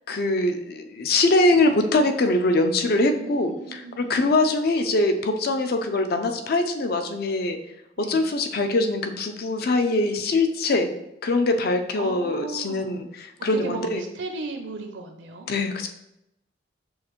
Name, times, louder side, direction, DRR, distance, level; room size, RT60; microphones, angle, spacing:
voice 1, 0.1-7.6 8.0-10.9 11.2-14.0 15.5-15.9, left 2 dB, 50° left, 7 dB, 0.4 m, -23 dB
voice 2, 3.2-4.4 8.0-8.3 12.0-13.0 13.5-15.5, right 3 dB, 65° right, 4 dB, 0.4 m, -36 dB
6.2 x 2.5 x 3.0 m, 0.84 s
head